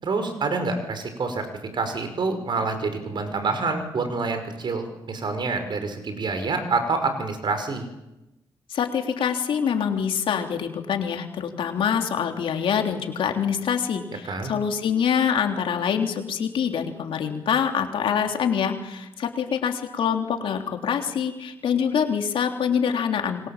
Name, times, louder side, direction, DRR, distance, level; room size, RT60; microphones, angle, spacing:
voice 1, 0.0-1.5 1.7-7.9 14.2-14.5, right 3 dB, 60° right, 8 dB, 5.7 m, -27 dB
voice 2, 8.7-23.5, left 7 dB, 80° left, 4 dB, 3.4 m, -25 dB
28.0 x 23.5 x 7.5 m, 0.97 s
cardioid pair, 70°, 9 cm